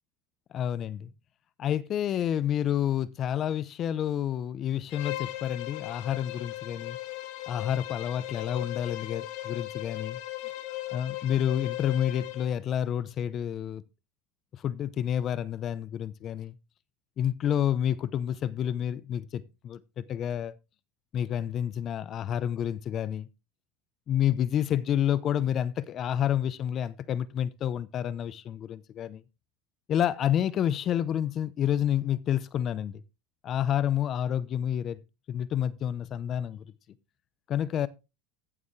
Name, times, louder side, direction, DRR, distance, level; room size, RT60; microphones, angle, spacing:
voice 1, 0.5-1.1 1.6-7.0 7.5-10.2 10.9-13.8 14.6-16.5 17.2-20.6 21.1-23.3 24.1-29.2 29.9-33.0 33.4-35.0 35.3-36.6 37.5-37.9, left 10 dB, 40° left, 0.7 m, -29 dB
Bowed string instrument, 4.9-12.6, left 16 dB, 65° left, 1.9 m, -37 dB
15.0 x 7.0 x 3.3 m
supercardioid pair, 120°, 0 cm